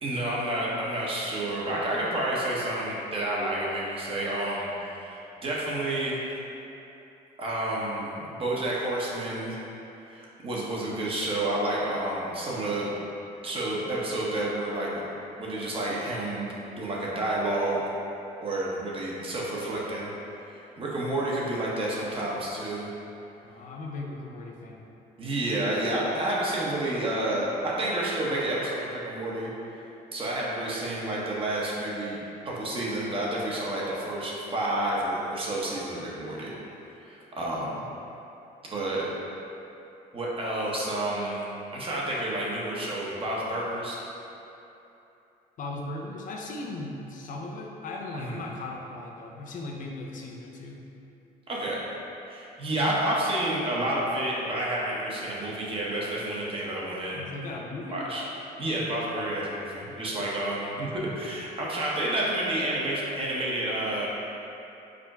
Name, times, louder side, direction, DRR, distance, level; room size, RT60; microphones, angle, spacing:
voice 1, 0.0-6.2 7.4-9.6 10.1-12.9 13.4-15.0 15.4-16.5 16.8-17.8 18.4-20.1 20.5-22.9 25.2-29.5 30.1-32.2 32.4-36.5 37.0-37.8 38.7-39.1 40.1-44.0 48.1-48.4 51.5-51.8 52.3-57.2 57.9-58.2 58.6-64.1, right 1 dB, 35° right, -5 dB, 0.9 m, -30 dB
voice 2, 23.4-24.9 45.6-50.8 57.1-58.0, left 2 dB, 50° left, 0 dB, 0.5 m, -37 dB
5.0 x 2.1 x 4.7 m, 2.9 s
cardioid pair, 110°, 17 cm